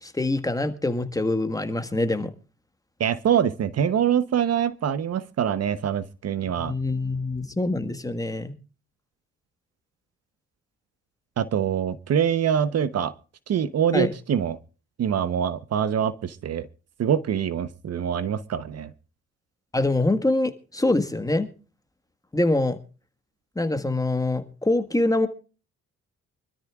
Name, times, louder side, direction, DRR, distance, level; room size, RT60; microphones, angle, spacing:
voice 1, 0.0-2.3 6.6-8.5 13.9-14.1 19.7-21.5 22.3-22.8 23.5-25.3, left 2 dB, 10° left, 1.6 m, -24 dB
voice 2, 3.0-6.7 11.4-13.1 13.5-14.6 15.0-16.7 17.0-18.9, right 8 dB, 55° right, 0.9 m, -24 dB
25.0 x 13.0 x 2.4 m
cardioid pair, 90°, 30 cm